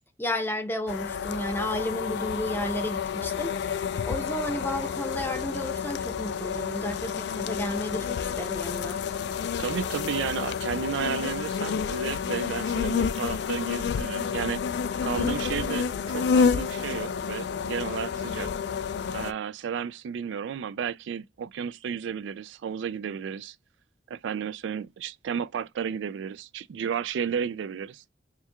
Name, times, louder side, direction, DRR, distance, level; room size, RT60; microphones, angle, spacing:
voice 1, 0.2-3.5 4.0-9.0, left 1 dB, 10° left, 0.6 m, -32 dB
sound 1, 0.9-19.3, left 6 dB, 60° left, 0.3 m, -29 dB
voice 2, 9.6-14.6 15.0-18.5 19.1-23.6 24.1-28.0, right 7 dB, 75° right, 0.3 m, -33 dB
4.4 x 2.3 x 3.3 m
head